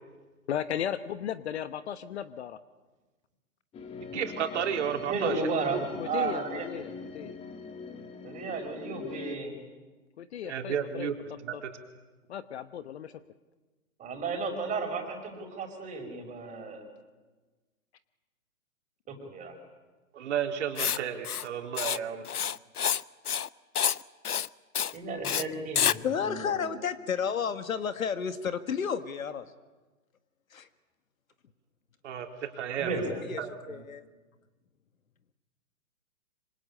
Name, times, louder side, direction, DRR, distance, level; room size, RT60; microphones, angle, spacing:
voice 1, 0.5-2.6 6.0-7.4 10.2-11.1 11.5-11.6 12.3-13.1, left 9 dB, 45° left, 13 dB, 1.2 m, -36 dB
sound 1, 3.7-9.4, left 4 dB, 15° left, 1.7 m, -43 dB
voice 2, 4.1-5.4 5.7-5.8 10.4-11.7 20.1-22.3 32.0-33.0 33.4-33.8, right 8 dB, 50° right, 4 dB, 3.8 m, -33 dB
voice 3, 5.1-6.7 8.2-9.6 14.0-16.8 19.1-19.5 24.9-26.6 32.8-33.2, right 3 dB, 15° right, 4 dB, 5.7 m, -33 dB
Writing, 20.8-21.0 21.2-21.5 21.8-22.0 22.2-23.0 23.3-23.5 23.7-24.0 24.2-24.5 24.7-24.9 25.2-25.4 25.8-26.0, left 8 dB, 85° left, 0.8 m, -28 dB
voice 4, 26.0-29.5 30.5-30.7 33.3-33.4 33.7-34.0, left 7 dB, 65° left, 11 dB, 1.9 m, -31 dB
26.0 x 25.5 x 8.7 m, 1.3 s
hypercardioid pair, 130°, 44 cm